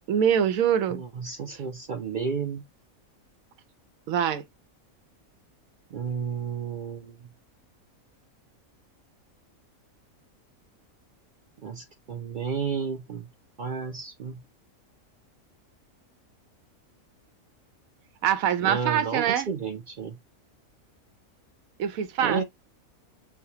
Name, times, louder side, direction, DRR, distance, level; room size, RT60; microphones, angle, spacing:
voice 1, 0.1-1.0 1.5-1.6 4.1-4.4 18.2-19.5 21.8-22.4, right 9 dB, 80° right, 1.1 m, -24 dB
voice 2, 0.9-2.6 5.9-7.1 11.6-13.3 13.6-14.4 18.6-20.2 22.2-22.4, right 6 dB, 65° right, 0.4 m, -32 dB
6.4 x 2.2 x 2.8 m
omnidirectional pair, 1.4 m